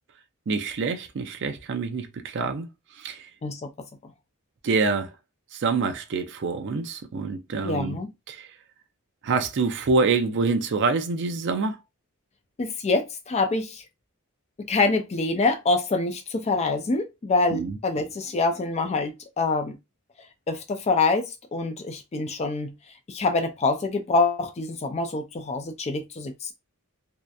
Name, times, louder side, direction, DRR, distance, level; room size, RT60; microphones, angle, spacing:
voice 1, 0.5-2.7 3.0-3.2 4.6-5.1 5.5-8.0 8.3-8.5 9.2-11.8 17.5-17.8, right 4 dB, 50° right, 0.4 m, -26 dB
voice 2, 7.6-8.1 12.6-13.8 14.6-19.8 20.5-22.7 23.1-26.5, left 3 dB, 30° left, 0.3 m, -25 dB
2.7 x 2.1 x 2.3 m
head